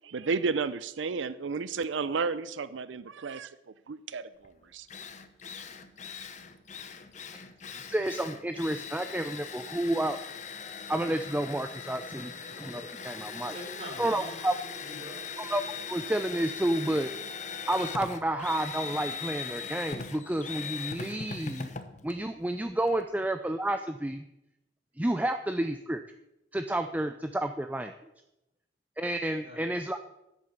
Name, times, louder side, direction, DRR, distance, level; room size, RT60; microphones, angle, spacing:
voice 1, 0.0-3.5 3.9-4.9, right 4 dB, 85° right, 0.5 m, -32 dB
Drill, 4.4-4.5 4.9-23.0, left 5 dB, 40° left, 0.8 m, -40 dB
voice 2, 7.9-10.2 10.9-12.3 12.6-13.5 14.0-14.5 15.4-15.6 15.9-17.1 17.7-21.7 22.0-24.2 25.0-26.0 26.5-27.9 29.0-30.0, right 1 dB, 10° right, 0.4 m, -30 dB
voice 3, 13.3-15.2 29.4-29.6, equal, 35° right, 4.5 m, -45 dB
10.5 x 8.2 x 7.1 m
head